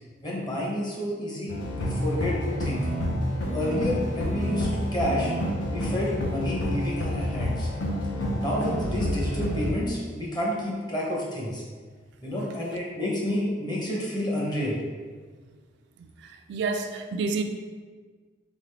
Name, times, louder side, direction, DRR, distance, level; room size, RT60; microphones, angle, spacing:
voice 1, 0.2-2.9 3.5-5.3 5.7-7.7 8.4-11.6 12.2-14.8, left 1 dB, 25° left, 0.9 m, -29 dB
sound 1, 1.5-9.7, equal, 80° left, 0.7 m, -29 dB
voice 2, 16.0-17.4, right 4 dB, 65° right, 0.3 m, -30 dB
3.8 x 3.6 x 3.3 m
head